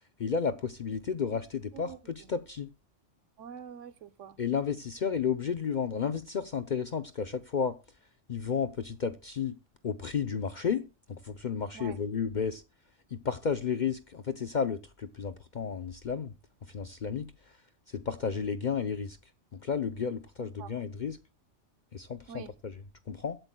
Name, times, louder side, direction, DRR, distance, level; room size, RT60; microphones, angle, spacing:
voice 1, 0.2-2.7 4.4-7.8 8.3-9.6 9.8-12.6 13.1-16.3 16.6-17.6 17.9-19.2 19.5-21.2 21.9-23.4, left 6 dB, 50° left, 0.7 m, -32 dB
voice 2, 3.4-4.4 11.7-12.0 20.4-20.7 22.3-22.5, right 8 dB, 90° right, 1.2 m, -45 dB
23.0 x 8.0 x 2.2 m
omnidirectional pair, 1.2 m